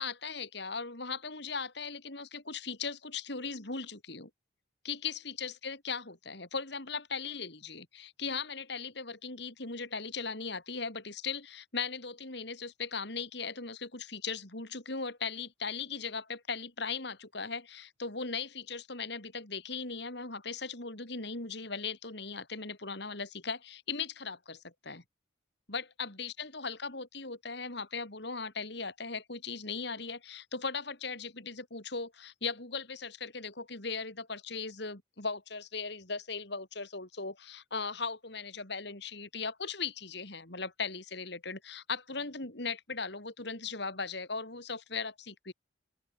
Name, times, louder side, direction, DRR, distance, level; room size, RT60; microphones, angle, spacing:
voice 1, 0.0-4.3 4.8-25.0 25.7-45.5, left 5 dB, 60° left, 3.6 m, -38 dB
open air
head